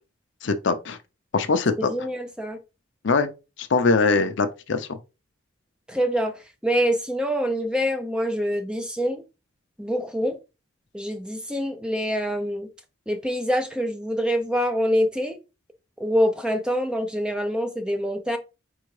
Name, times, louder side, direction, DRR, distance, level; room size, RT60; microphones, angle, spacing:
voice 1, 0.4-1.0 1.3-1.9 3.0-3.3 3.6-5.0, left 4 dB, 65° left, 0.5 m, -22 dB
voice 2, 1.8-2.6 5.9-6.3 6.6-9.2 9.8-10.4 10.9-12.7 13.1-15.4 16.0-18.4, equal, 5° right, 0.5 m, -25 dB
4.4 x 3.6 x 3.2 m
head